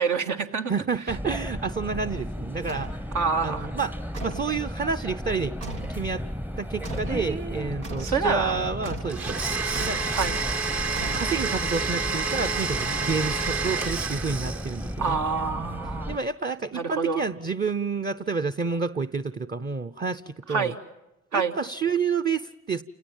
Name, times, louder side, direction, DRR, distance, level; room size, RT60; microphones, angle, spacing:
voice 1, 0.0-0.7 3.1-3.7 7.1-7.7 8.0-8.7 10.1-10.4 15.0-16.2 16.7-17.2 20.5-20.8 21.3-21.5, right 5 dB, 75° right, 5 dB, 1.7 m, -27 dB
voice 2, 0.7-3.1 3.4-3.9 4.2-5.5 5.9-6.2 6.6-9.4 9.9-10.0 11.1-15.2 16.1-20.7 21.3-22.8, right 5 dB, 30° right, 8 dB, 0.8 m, -29 dB
sound 1, 1.1-16.2, equal, 5° right, 0.7 m, -34 dB
sound 2, 2.7-3.0 4.1-4.5 5.6-6.0 6.8-7.2 7.8-8.2 8.8-9.2 9.7-10.1 10.9-11.6, right 3 dB, 90° right, 1.4 m, -38 dB
Domestic sounds home sounds, 9.1-14.9, right 5 dB, 55° right, 2.1 m, -29 dB
29.5 x 18.5 x 7.3 m, 1.0 s
supercardioid pair, 45°, 31 cm